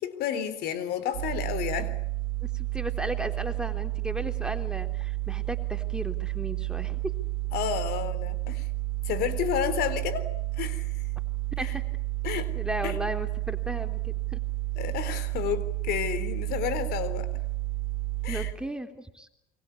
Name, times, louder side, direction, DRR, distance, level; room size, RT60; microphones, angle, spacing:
voice 1, 0.0-2.0 7.5-8.7 9.0-11.0 11.6-11.7 12.2-12.5 12.8-13.0 14.8-17.3 18.2-18.5, left 9 dB, 65° left, 14 dB, 3.9 m, -31 dB
sound 1, 1.1-18.5, right 19 dB, 85° right, 2.7 m, -31 dB
voice 2, 2.4-7.1 11.6-11.8 12.6-14.4 18.3-19.4, right 1 dB, 5° right, 6 dB, 3.5 m, -35 dB
29.0 x 24.0 x 8.5 m, 0.83 s
supercardioid pair, 90°, 18 cm